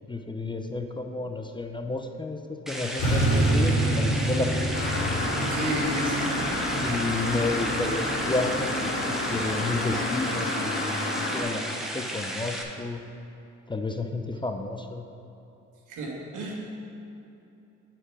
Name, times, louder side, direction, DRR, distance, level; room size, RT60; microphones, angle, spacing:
voice 1, 0.1-4.7 6.8-13.0 13.7-15.0, left 3 dB, 15° left, 5 dB, 0.5 m, -31 dB
sound 1, 2.7-12.6, right 1 dB, ahead, 0.9 m, -34 dB
sound 2, 3.0-10.0, right 1 dB, 85° left, 2.0 m, -28 dB
sound 3, 4.7-11.4, left 2 dB, 40° left, 1.5 m, -30 dB
voice 2, 5.5-6.7 15.9-16.5, right 1 dB, 90° right, -2 dB, 1.7 m, -32 dB
8.1 x 6.0 x 4.8 m, 2.8 s
cardioid pair, 90°, 30 cm